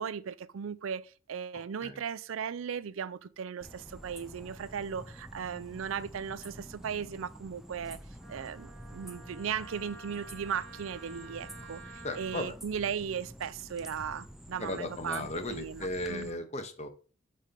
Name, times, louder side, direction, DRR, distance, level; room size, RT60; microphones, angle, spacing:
voice 1, 0.0-8.0 8.3-16.4, right 7 dB, 85° right, 0.4 m, -37 dB
sound 1, 3.6-16.3, equal, ahead, 0.4 m, -48 dB
Wind instrument woodwind instrument, 8.2-12.5, right 2 dB, 60° right, 1.0 m, -50 dB
voice 2, 12.0-12.5 14.6-16.9, left 2 dB, 35° left, 0.9 m, -36 dB
5.0 x 4.3 x 5.2 m
head